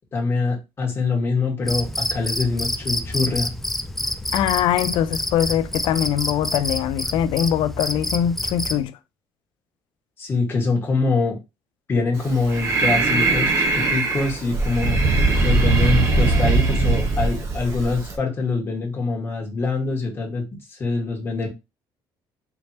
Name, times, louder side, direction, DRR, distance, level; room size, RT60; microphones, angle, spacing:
voice 1, 0.1-3.5 10.2-11.4 11.9-15.0 15.4-21.5, left 3 dB, 25° left, 1.7 m, -24 dB
Cricket, 1.6-8.8, left 1 dB, 5° left, 0.3 m, -28 dB
voice 2, 4.3-8.9, left 10 dB, 75° left, 0.5 m, -22 dB
Breathing, 12.2-18.2, right 3 dB, 35° right, 1.1 m, -20 dB
4.6 x 3.3 x 2.8 m
cardioid pair, 150°, 8 cm